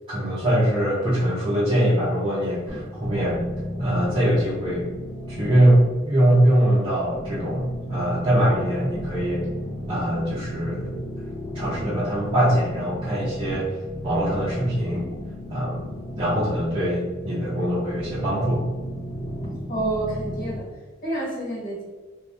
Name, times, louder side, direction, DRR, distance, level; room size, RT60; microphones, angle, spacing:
voice 1, 0.1-3.4 3.8-4.9 5.3-9.4 9.9-11.0 11.5-13.8 14.0-15.0 15.5-18.6, right 1 dB, 25° right, -9 dB, 0.6 m, -22 dB
sound 1, 2.7-20.6, equal, 85° left, 1.4 m, -34 dB
voice 2, 19.7-20.7 21.0-21.8, right 2 dB, 40° left, -6 dB, 1.1 m, -28 dB
2.6 x 2.2 x 3.2 m, 1.3 s
head